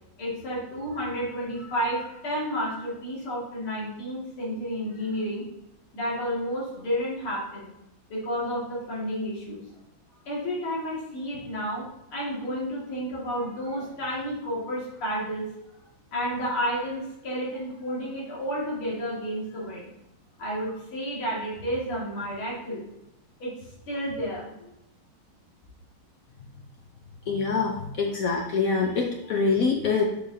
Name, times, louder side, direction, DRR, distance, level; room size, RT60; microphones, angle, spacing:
voice 1, 0.2-5.5 5.9-7.7 8.1-9.6 10.3-15.5 16.1-19.9 20.4-22.9 23.4-23.6 23.9-24.5, equal, 90° left, -6 dB, 3.0 m, -31 dB
voice 2, 27.3-30.0, left 4 dB, 70° left, 1 dB, 0.8 m, -25 dB
6.8 x 5.0 x 2.7 m, 0.86 s
omnidirectional pair, 2.3 m